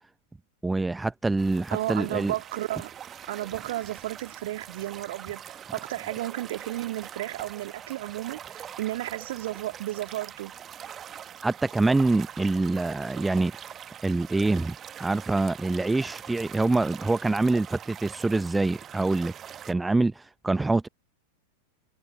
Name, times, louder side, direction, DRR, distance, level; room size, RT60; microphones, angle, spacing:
voice 1, 0.6-2.3 11.4-13.5 14.0-19.3 19.7-20.9, right 2 dB, 10° right, 0.8 m, -25 dB
sound 1, 1.4-19.7, right 9 dB, 25° right, 1.4 m, -43 dB
voice 2, 1.7-3.0 3.3-10.6, right 15 dB, 55° right, 2.3 m, -33 dB
figure-of-eight pair, 90°, 0 cm